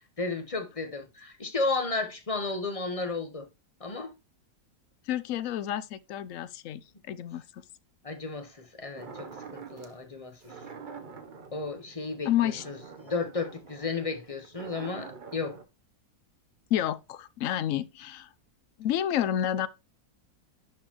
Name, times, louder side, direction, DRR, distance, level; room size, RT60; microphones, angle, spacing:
voice 1, 0.2-3.5 3.8-4.1 8.0-10.5 11.5-15.6, left 3 dB, 25° left, 1.0 m, -33 dB
voice 2, 5.1-7.6 12.2-12.6 16.7-18.3 18.8-19.7, left 11 dB, 65° left, 0.9 m, -30 dB
sound 1, 9.0-10.0 10.4-15.6, right 5 dB, 40° right, 0.8 m, -46 dB
11.0 x 4.2 x 2.9 m
omnidirectional pair, 1.7 m